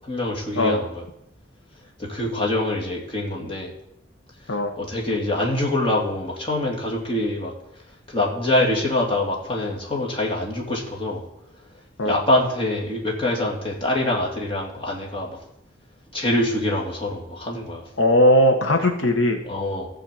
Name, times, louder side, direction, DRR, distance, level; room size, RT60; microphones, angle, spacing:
voice 1, 0.0-1.0 2.0-3.7 4.8-7.5 8.1-11.2 12.0-15.4 16.1-17.8 19.5-19.9, left 1 dB, 30° left, -2 dB, 2.6 m, -24 dB
voice 2, 18.0-19.4, left 1 dB, 80° left, 5 dB, 1.3 m, -18 dB
14.5 x 4.9 x 7.7 m, 0.80 s
head